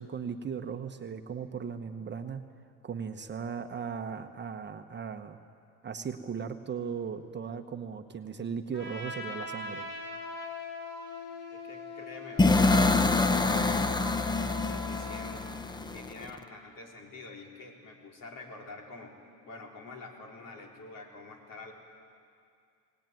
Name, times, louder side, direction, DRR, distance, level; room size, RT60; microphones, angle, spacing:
voice 1, 0.0-2.4 2.8-5.4 5.8-9.9, right 6 dB, 30° right, 7 dB, 1.1 m, -37 dB
Trumpet, 8.7-15.4, left 3 dB, 30° left, 4.9 m, -41 dB
voice 2, 11.5-15.4 15.9-19.1 19.4-21.7, left 3 dB, 55° left, 1 dB, 4.1 m, -46 dB
sound 1, 12.4-16.3, left 3 dB, 10° left, 0.9 m, -26 dB
21.0 x 18.0 x 9.2 m, 2.3 s
supercardioid pair, 105°, 38 cm